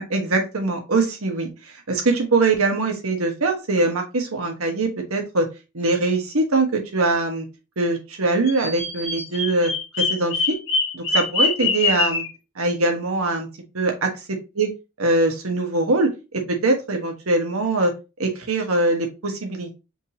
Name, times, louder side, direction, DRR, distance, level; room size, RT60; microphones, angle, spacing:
voice 1, 0.0-5.5 5.7-7.5 7.8-9.7 10.0-10.6 10.9-12.2 12.6-13.5 13.7-14.2 14.6-14.7 15.0-17.9 18.2-19.8, right 2 dB, 85° right, 3 dB, 1.3 m, -22 dB
Bird vocalization bird call bird song, 8.4-12.3, left 4 dB, 65° left, 1.5 m, -23 dB
5.1 x 3.4 x 2.8 m, 0.28 s
head